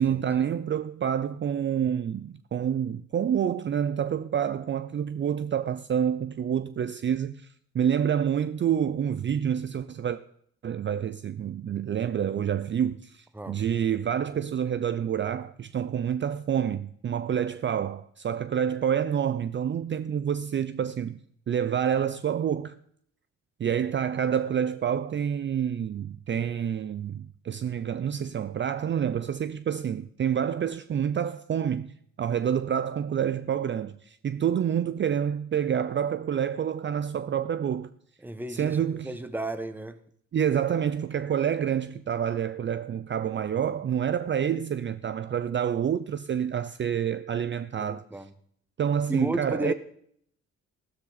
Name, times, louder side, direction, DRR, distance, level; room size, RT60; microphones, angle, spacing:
voice 1, 0.0-7.5 7.7-10.2 10.6-21.2 21.5-22.8 23.6-37.9 38.5-39.2 40.3-48.2 48.8-49.7, right 8 dB, 40° right, 0.5 m, -28 dB
voice 2, 38.2-38.8 39.0-40.0 47.8-48.3 49.1-49.7, right 1 dB, 5° right, 1.1 m, -33 dB
13.5 x 13.0 x 4.1 m
cardioid pair, 90°, 30 cm